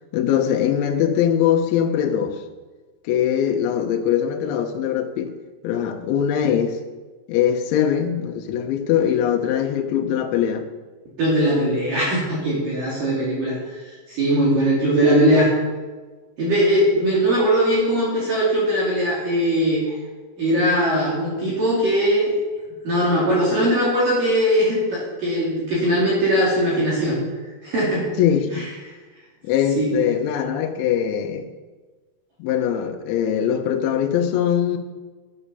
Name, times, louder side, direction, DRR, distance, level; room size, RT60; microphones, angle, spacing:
voice 1, 0.1-2.4 3.0-5.3 5.6-6.8 7.3-10.7 28.2-28.7 29.4-31.5 32.4-34.8, left 9 dB, 90° left, 4 dB, 3.3 m, -21 dB
voice 2, 11.2-13.8 14.1-15.5 16.4-20.0 20.4-22.3 22.8-27.2 27.6-28.1 28.5-28.6 29.8-29.9, equal, 50° right, -7 dB, 4.3 m, -20 dB
10.0 x 9.9 x 6.8 m, 1.3 s
omnidirectional pair, 5.2 m